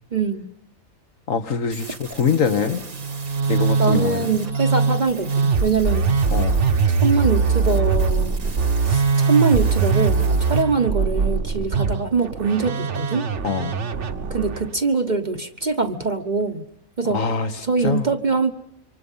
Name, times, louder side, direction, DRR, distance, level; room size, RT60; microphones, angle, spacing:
voice 1, 0.1-0.5 3.8-6.1 7.0-8.4 8.8-13.3 14.3-16.6 17.0-17.2 17.6-18.5, right 4 dB, 35° right, 9 dB, 1.0 m, -23 dB
voice 2, 1.3-2.8 3.5-4.2 6.3-6.6 13.4-13.8 17.1-17.5 17.8-18.0, left 6 dB, 65° left, 9 dB, 1.8 m, -23 dB
sound 1, 1.7-10.6, right 4 dB, 85° right, 2.8 m, -41 dB
Musical instrument, 2.9-14.7, right 4 dB, 55° right, 1.4 m, -21 dB
27.0 x 25.0 x 5.6 m, 0.75 s
omnidirectional pair, 1.5 m